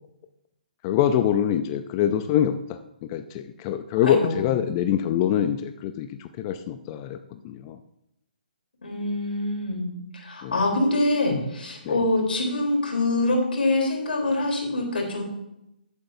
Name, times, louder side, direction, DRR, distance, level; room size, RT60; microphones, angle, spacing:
voice 1, 0.8-7.8 10.4-10.6 11.8-12.1, left 10 dB, 30° left, 8 dB, 0.5 m, -25 dB
voice 2, 4.0-4.4 8.8-15.2, left 2 dB, 85° left, 1 dB, 3.6 m, -25 dB
14.0 x 8.2 x 2.7 m, 0.84 s
hypercardioid pair, 150°, 5 cm